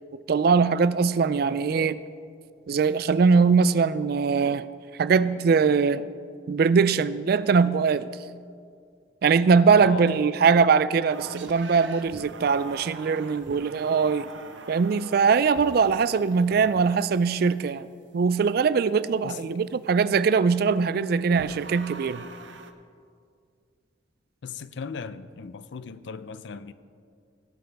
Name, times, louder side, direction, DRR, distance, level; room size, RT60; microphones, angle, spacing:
voice 1, 0.3-2.0 2.7-4.7 5.0-6.1 6.5-8.1 9.2-14.3 14.7-17.9 18.1-22.3, right 5 dB, 55° right, 0.3 m, -21 dB
voice 2, 9.8-10.1 19.2-19.4 24.4-26.7, left 5 dB, 70° left, 0.4 m, -37 dB
sound 1, 11.1-17.4 21.3-22.7, right 4 dB, 75° right, 0.7 m, -43 dB
17.5 x 8.7 x 3.5 m
head